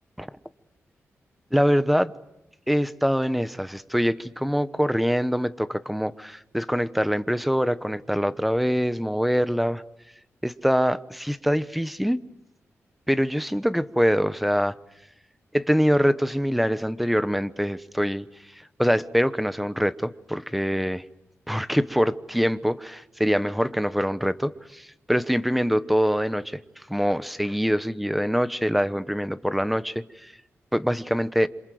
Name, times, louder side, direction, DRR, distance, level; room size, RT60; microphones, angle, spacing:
voice 1, 1.5-2.1 2.7-9.8 10.4-12.2 13.1-14.7 15.5-18.3 18.8-21.0 21.5-26.6 26.9-30.3 30.7-31.5, equal, ahead, 14 dB, 1.0 m, -24 dB
27.5 x 27.0 x 7.8 m, 0.86 s
wide cardioid pair, 110°, 5 cm